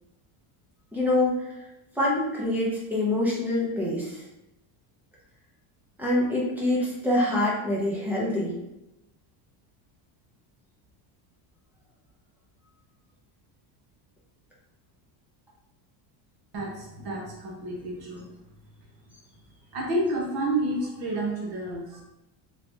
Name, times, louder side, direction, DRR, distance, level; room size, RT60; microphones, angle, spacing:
voice 1, 0.9-1.5 2.0-4.2 6.0-8.6, left 1 dB, 5° right, -6 dB, 0.5 m, -25 dB
voice 2, 16.5-18.3 19.7-22.0, right 1 dB, 50° right, -1 dB, 1.0 m, -30 dB
3.3 x 3.0 x 2.7 m, 0.90 s
cardioid pair, 170°, 49 cm